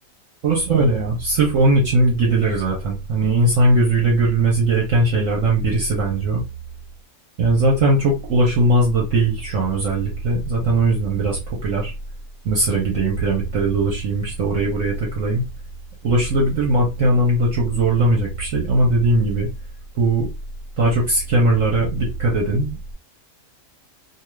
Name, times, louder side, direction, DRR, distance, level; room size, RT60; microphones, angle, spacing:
voice 1, 0.4-6.4 7.4-11.9 12.4-15.4 16.0-19.5 19.9-20.3 20.8-22.8, right 2 dB, 60° right, -2 dB, 1.1 m, -19 dB
2.7 x 2.4 x 3.1 m, 0.26 s
omnidirectional pair, 1.6 m